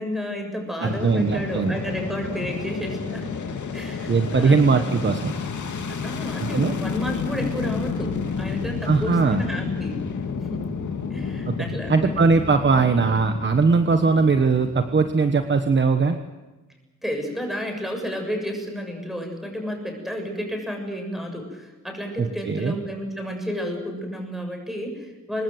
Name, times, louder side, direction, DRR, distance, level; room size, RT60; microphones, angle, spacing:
voice 1, 0.0-3.4 3.7-4.9 6.0-10.0 10.5-10.6 11.1-12.1 17.0-25.4, equal, ahead, 3 dB, 7.1 m, -31 dB
voice 2, 0.8-1.8 4.1-5.3 6.4-6.7 8.9-9.4 11.5-11.6 11.9-16.2 22.2-22.8, right 4 dB, 35° right, 7 dB, 1.3 m, -20 dB
Fixed-wing aircraft airplane, 0.9-16.0, left 5 dB, 70° left, 2.4 m, -31 dB
25.0 x 20.5 x 8.0 m, 1.2 s
wide cardioid pair, 130°, 31 cm